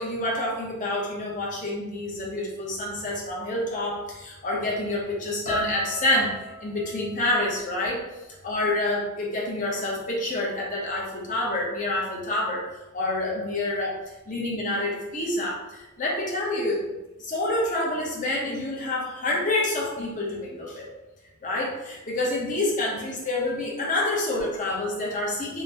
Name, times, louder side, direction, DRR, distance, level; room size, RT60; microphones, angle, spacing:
voice 1, 0.0-8.0 8.4-12.7 12.9-14.0 14.3-16.8 17.2-20.8 21.4-25.6, left 1 dB, 35° left, -3 dB, 0.7 m, -27 dB
sound 1, 5.5-9.7 9.9-10.7 11.3-11.5, equal, 70° left, 1.3 m, -39 dB
3.8 x 2.1 x 2.7 m, 1.0 s
head